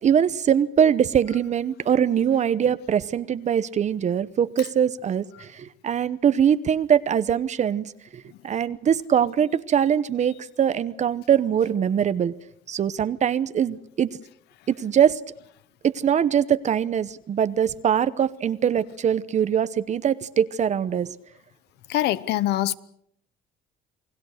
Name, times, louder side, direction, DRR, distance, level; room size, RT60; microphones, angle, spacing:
voice 1, 0.0-12.3 12.7-14.1 14.7-15.2 15.8-21.1, right 8 dB, 45° right, 0.9 m, -22 dB
voice 2, 21.9-22.8, left 14 dB, 80° left, 1.0 m, -23 dB
29.0 x 20.0 x 6.5 m
cardioid pair, 110°, 17 cm